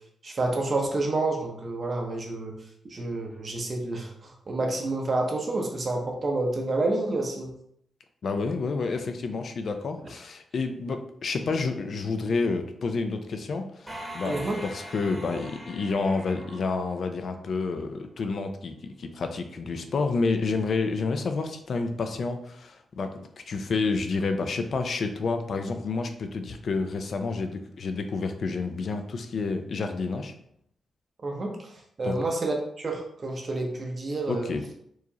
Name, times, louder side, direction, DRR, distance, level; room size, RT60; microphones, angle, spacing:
voice 1, 0.2-2.5 2.9-7.5 14.2-14.6 31.2-31.7 32.0-34.5, right 2 dB, 35° right, 1 dB, 0.7 m, -29 dB
voice 2, 8.2-30.3 32.0-32.2 34.3-34.7, left 4 dB, 50° left, 7 dB, 0.4 m, -29 dB
sound 1, 13.9-17.5, right 1 dB, 5° right, 1.0 m, -42 dB
4.6 x 3.1 x 2.8 m, 0.70 s
wide cardioid pair, 155°, 0 cm